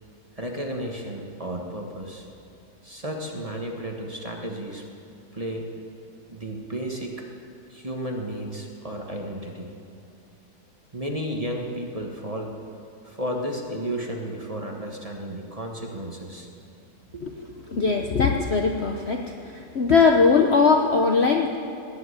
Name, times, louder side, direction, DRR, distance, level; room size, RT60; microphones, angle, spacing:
voice 1, 0.4-2.3 2.8-4.8 5.3-5.7 6.3-7.1 7.7-9.7 10.9-12.5 13.0-16.5 17.1-17.3, right 1 dB, 20° right, 1 dB, 1.4 m, -33 dB
voice 2, 17.7-19.2 19.7-21.6, left 4 dB, 50° left, 3 dB, 0.9 m, -20 dB
18.5 x 7.9 x 9.8 m, 2.6 s
omnidirectional pair, 1.9 m